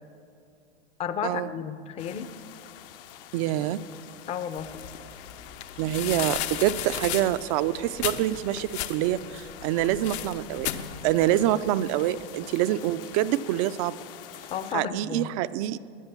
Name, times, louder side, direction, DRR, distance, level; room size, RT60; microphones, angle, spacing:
voice 1, 1.0-2.3 4.3-4.7 14.5-15.3, left 8 dB, 20° left, 12 dB, 0.5 m, -32 dB
sound 1, 2.0-14.7, left 12 dB, 55° left, 0.8 m, -47 dB
voice 2, 3.3-3.8 5.8-10.7 11.0-13.9 14.7-15.8, right 13 dB, 35° right, 15 dB, 0.4 m, -26 dB
sound 2, 4.6-11.4, left 11 dB, 70° left, 1.1 m, -35 dB
20.5 x 10.5 x 6.9 m, 2.6 s
supercardioid pair, 145°, 33 cm